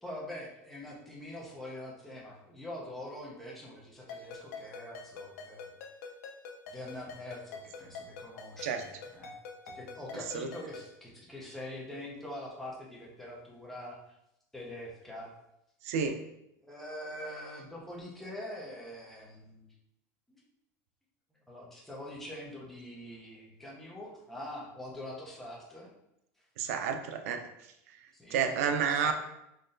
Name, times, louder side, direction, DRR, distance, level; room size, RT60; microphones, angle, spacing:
voice 1, 0.0-5.7 6.0-6.1 6.7-9.4 9.6-14.2 14.5-15.3 16.6-19.7 20.3-20.4 21.5-25.9 28.1-29.1, left 1 dB, 5° left, -4 dB, 0.6 m, -44 dB
Ringtone, 4.1-11.0, left 4 dB, 90° left, 0.5 m, -46 dB
voice 2, 15.8-16.2 26.6-27.4 28.3-29.1, right 6 dB, 80° right, 6 dB, 0.5 m, -30 dB
3.9 x 3.0 x 2.6 m, 0.82 s
supercardioid pair, 170°, 8 cm